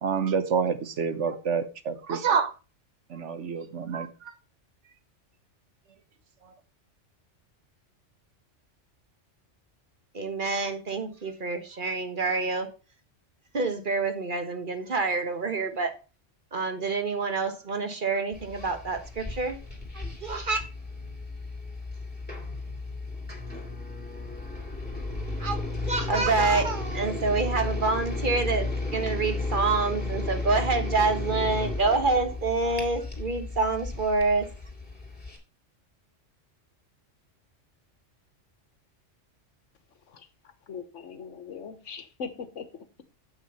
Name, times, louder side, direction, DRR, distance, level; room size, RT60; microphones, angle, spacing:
voice 1, 0.0-2.5 3.1-4.3, right 6 dB, 70° right, 10 dB, 1.3 m, -28 dB
voice 2, 10.1-12.7 13.5-15.9 16.5-19.6 19.9-20.6 25.4-34.5, right 3 dB, 45° right, 7 dB, 1.5 m, -27 dB
sound 1, 18.3-35.4, left 2 dB, 5° left, 2.6 m, -34 dB
voice 3, 40.7-42.6, left 5 dB, 75° left, 11 dB, 1.4 m, -39 dB
7.9 x 6.2 x 5.5 m, 0.32 s
omnidirectional pair, 1.3 m